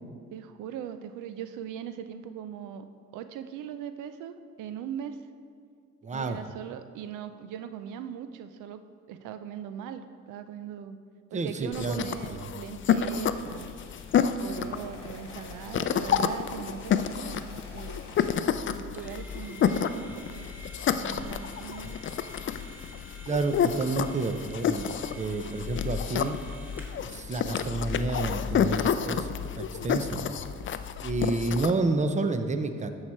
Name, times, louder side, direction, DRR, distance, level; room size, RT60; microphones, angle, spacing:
voice 1, 0.3-2.8 3.1-5.2 6.1-8.8 9.1-11.0 11.3-13.8 14.4-18.0 18.7-20.5 20.9-22.0, right 9 dB, 90° right, 10 dB, 0.5 m, -40 dB
voice 2, 6.0-6.4 11.3-12.1 23.3-24.8 25.2-26.4 27.0-30.3 31.0-32.9, right 3 dB, 25° right, 8 dB, 0.6 m, -30 dB
sound 1, 11.7-31.7, left 8 dB, 40° left, 0.4 m, -30 dB
sound 2, 12.8-18.3, left 2 dB, 20° left, 2.0 m, -50 dB
sound 3, 18.9-27.1, equal, 5° right, 1.3 m, -49 dB
13.0 x 4.8 x 4.3 m, 2.2 s
cardioid pair, 90°, 30 cm